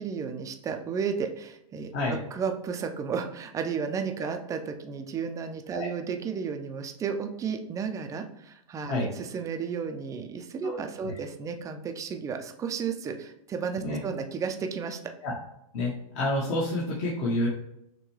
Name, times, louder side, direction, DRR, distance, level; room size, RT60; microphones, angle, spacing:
voice 1, 0.0-15.0, right 6 dB, 15° right, 6 dB, 0.4 m, -33 dB
voice 2, 15.7-17.5, left 1 dB, 50° left, -6 dB, 1.2 m, -28 dB
6.3 x 2.3 x 3.1 m, 0.79 s
hypercardioid pair, 125°, 19 cm